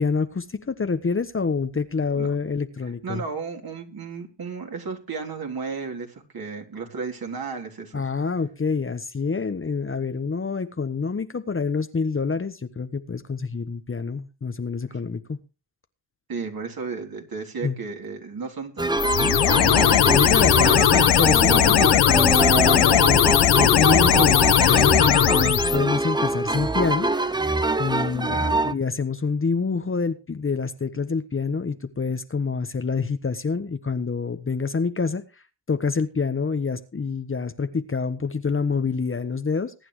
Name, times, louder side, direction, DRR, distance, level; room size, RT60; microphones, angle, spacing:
voice 1, 0.0-3.2 7.9-15.4 17.6-17.8 20.1-27.1 27.8-35.2 35.7-39.7, left 5 dB, 25° left, 9 dB, 1.3 m, -27 dB
voice 2, 3.0-8.0 14.9-15.0 16.3-20.7 28.0-28.6, right 5 dB, 50° right, 1 dB, 4.0 m, -34 dB
sound 1, 18.8-28.7, right 2 dB, 10° right, 0.8 m, -24 dB
sound 2, 19.0-25.8, left 11 dB, 55° left, 1.1 m, -18 dB
22.0 x 9.2 x 3.2 m, 0.31 s
supercardioid pair, 50°, 47 cm